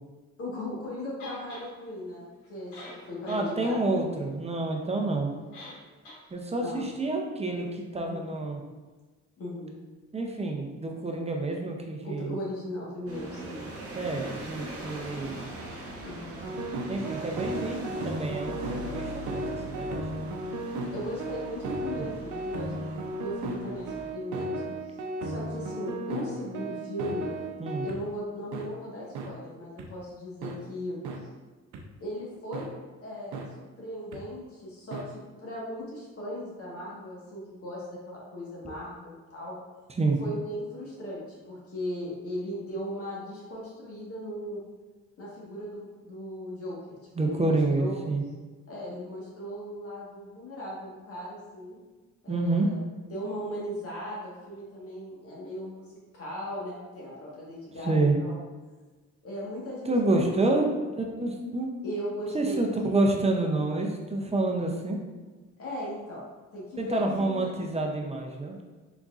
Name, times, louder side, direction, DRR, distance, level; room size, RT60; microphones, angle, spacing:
voice 1, 0.4-2.7 3.1-3.9 6.6-6.9 7.5-7.7 8.1-8.2 9.4-9.8 12.0-13.7 16.0-16.4 20.9-22.7 23.2-24.6 25.2-27.3 27.8-31.3 32.0-32.7 33.0-39.6 40.2-44.6 45.2-48.0 48.7-51.8 52.2-52.8 53.1-58.4 59.2-60.2 61.8-63.0 65.6-66.2 66.5-67.6, equal, 50° left, -5 dB, 1.5 m, -37 dB
sound 1, 1.2-1.7 2.4-2.5 2.7-3.5 3.8-3.9 5.5-5.8 6.0-6.2, left 2 dB, 85° left, 1.3 m, -44 dB
voice 2, 3.3-5.3 6.3-8.6 10.1-12.4 13.9-15.4 16.9-20.4 21.9-22.1 27.6-27.9 40.0-40.2 47.2-48.2 52.3-52.7 57.8-58.2 59.9-60.7 60.9-61.7 62.3-65.0 66.8-68.6, right 2 dB, 20° right, 1 dB, 0.5 m, -28 dB
sound 2, 13.1-24.1, equal, 50° right, 0.9 m, -41 dB
sound 3, 16.4-28.0 28.5-28.7 29.1-29.3 29.8-29.9 30.4-30.6 31.0-31.2 31.7-31.8 32.5-32.7 33.3-33.5 34.1-34.2 34.9-35.0, right 2 dB, 80° right, 0.6 m, -34 dB
4.1 x 3.5 x 2.4 m, 1.3 s
cardioid pair, 90°, 30 cm